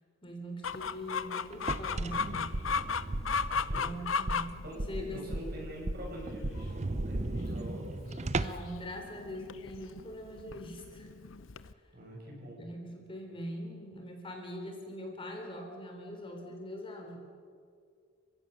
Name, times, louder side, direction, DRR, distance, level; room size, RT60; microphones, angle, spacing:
voice 1, 0.2-2.6 3.7-5.3 8.3-11.1 12.6-17.2, equal, 25° left, 2 dB, 3.5 m, -42 dB
Chicken rooster, 0.6-11.7, left 5 dB, 80° left, 0.8 m, -37 dB
sound 1, 1.5-4.1 4.5-4.6 5.0-5.1 5.4-5.5 5.7-5.8 6.2-8.8, right 2 dB, 35° right, 0.7 m, -37 dB
sound 2, 2.0-2.3 2.5-2.8 3.1-3.4 3.7-4.0 4.3-4.5 4.8-5.6 5.9-6.2 6.4-6.7 7.0-7.3, right 1 dB, 80° right, 1.3 m, -35 dB
voice 2, 5.1-8.3 11.9-12.7, equal, 50° right, -1 dB, 6.9 m, -44 dB
30.0 x 16.0 x 6.7 m, 2.2 s
head